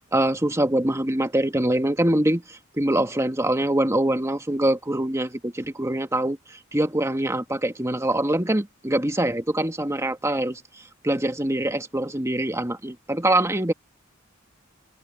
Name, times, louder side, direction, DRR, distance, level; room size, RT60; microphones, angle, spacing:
voice 1, 0.1-6.4 6.7-10.6 11.0-13.7, right 1 dB, 15° right, 1.8 m, -24 dB
head